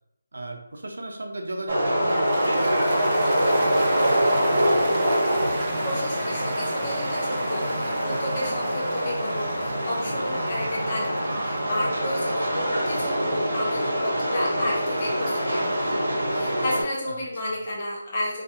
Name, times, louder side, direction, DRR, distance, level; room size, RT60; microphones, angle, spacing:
voice 1, 0.3-4.7 17.0-17.2 17.5-17.6, right 1 dB, 75° right, 3 dB, 0.5 m, -35 dB
sound 1, 1.7-16.8, equal, 60° right, 0.9 m, -25 dB
Cheering / Applause, 1.8-14.1, right 2 dB, 20° right, 0.3 m, -37 dB
voice 2, 5.8-18.4, left 1 dB, 25° left, -4 dB, 0.6 m, -32 dB
2.3 x 2.3 x 2.8 m, 0.83 s
hypercardioid pair, 175°, 0 cm